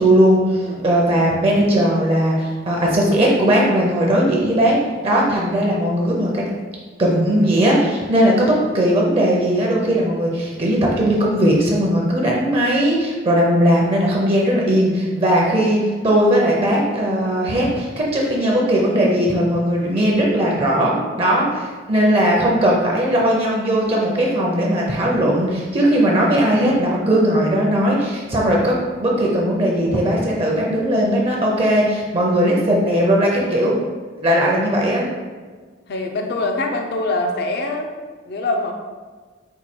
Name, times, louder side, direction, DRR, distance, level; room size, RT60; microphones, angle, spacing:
voice 1, 0.0-4.8 5.0-6.4 7.0-28.7 29.0-33.8 34.2-35.1, equal, 30° right, -2 dB, 0.6 m, -18 dB
voice 2, 0.6-1.0 35.9-37.9 38.3-38.7, left 2 dB, 60° left, 4 dB, 0.5 m, -24 dB
4.6 x 2.3 x 4.2 m, 1.4 s
head